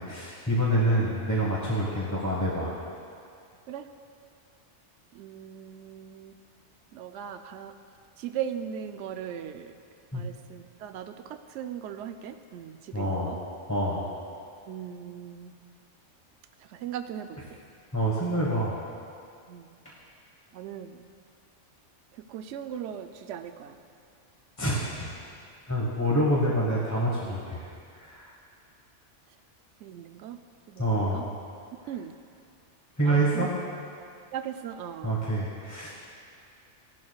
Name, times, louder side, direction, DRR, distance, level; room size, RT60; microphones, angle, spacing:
voice 1, 0.0-2.8 10.1-10.2 12.9-13.3 13.7-14.0 17.9-18.8 19.8-19.9 24.6-25.1 25.7-27.6 28.0-28.3 30.8-31.3 33.0-33.5 35.0-35.9, right 1 dB, 15° left, -5 dB, 1.3 m, -26 dB
voice 2, 5.1-6.4 6.9-7.7 8.2-9.7 10.1-13.4 14.7-15.5 16.6-17.6 19.5-19.7 20.5-21.1 22.1-23.8 29.8-30.4 30.7-31.2 31.9-32.2 33.0-33.5 34.3-35.2, right 9 dB, 75° right, 8 dB, 0.9 m, -38 dB
16.0 x 12.0 x 2.3 m, 2.3 s
omnidirectional pair, 1.2 m